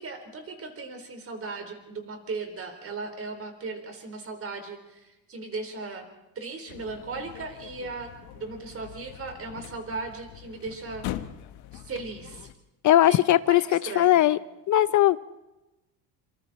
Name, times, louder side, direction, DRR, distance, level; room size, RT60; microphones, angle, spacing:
voice 1, 0.0-6.1 6.4-11.1 11.7-12.5 13.0-14.2, right 3 dB, 35° right, 5 dB, 4.0 m, -37 dB
sound 1, 6.7-12.5, left 13 dB, 85° left, 1.2 m, -42 dB
voice 2, 12.8-13.6 14.0-14.4 14.7-15.2, left 13 dB, 50° left, 15 dB, 0.6 m, -19 dB
26.0 x 25.0 x 4.2 m, 0.99 s
cardioid pair, 120°, 38 cm